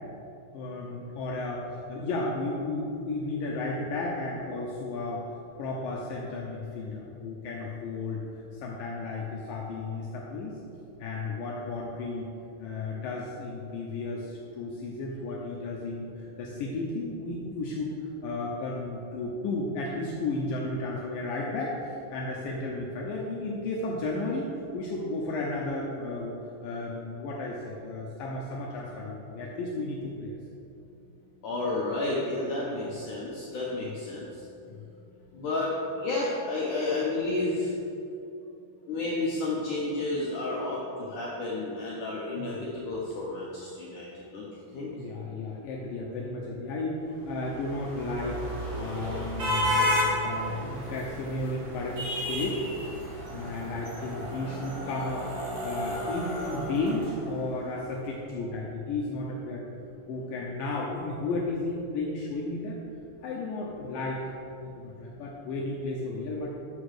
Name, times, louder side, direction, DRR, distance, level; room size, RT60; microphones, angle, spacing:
voice 1, 0.5-5.2 5.6-8.2 8.5-10.5 11.0-12.3 12.6-17.9 18.2-26.4 26.6-30.4 32.8-32.9 33.8-33.9 34.7-34.8 42.4-42.6 44.9-48.5 48.8-52.6 53.3-55.3 55.6-59.6 60.1-62.8 63.2-64.2 64.6-66.5, left 2 dB, 90° left, -3 dB, 1.9 m, -33 dB
voice 2, 31.4-34.4 35.3-37.7 38.9-44.1 44.3-44.4 44.7-44.9, left 2 dB, 75° left, -5 dB, 1.9 m, -31 dB
sound 1, 47.3-57.6, equal, 80° right, 1.1 m, -32 dB
11.0 x 7.1 x 4.9 m, 2.8 s
omnidirectional pair, 5.2 m